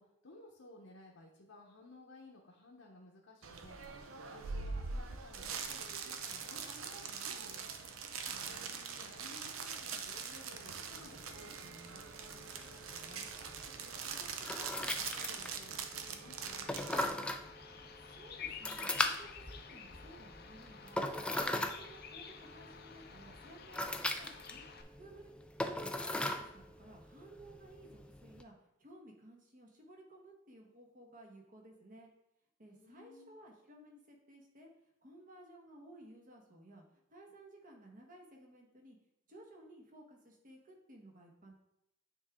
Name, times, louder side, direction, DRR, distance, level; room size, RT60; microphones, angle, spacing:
voice 1, 0.0-7.7 8.4-13.7 14.0-17.3 32.7-33.3, left 2 dB, 75° left, -2 dB, 0.9 m, -57 dB
sound 1, 3.4-17.1, right 5 dB, 80° right, 0.6 m, -43 dB
voice 2, 8.3-8.9 18.0-21.0 21.3-23.8 24.2-25.3 25.6-32.1 32.6-34.7 35.0-39.0 39.3-41.6, right 1 dB, 45° right, 0 dB, 1.2 m, -57 dB
sound 2, 10.9-28.4, left 1 dB, 5° left, 0.3 m, -40 dB
Bird vocalization bird call bird song, 17.4-24.8, left 7 dB, 50° left, 0.6 m, -51 dB
8.9 x 3.6 x 3.6 m, 0.83 s
head